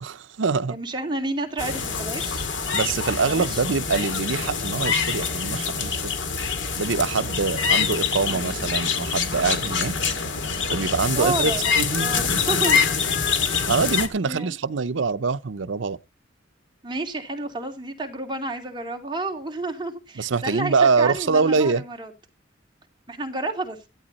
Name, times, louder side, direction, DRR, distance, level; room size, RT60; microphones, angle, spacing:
voice 1, 0.0-0.8 2.7-6.1 6.8-9.9 10.7-12.1 13.4-16.0 20.2-21.8, right 4 dB, 90° right, 0.7 m, -24 dB
voice 2, 0.7-2.5 3.3-3.6 8.3-8.7 11.2-11.7 12.0-12.8 13.5-13.7 14.3-14.6 16.8-22.1 23.1-23.8, right 2 dB, 25° right, 2.6 m, -30 dB
sound 1, 1.6-14.1, left 5 dB, 80° left, 2.2 m, -25 dB
14.5 x 12.0 x 4.1 m
head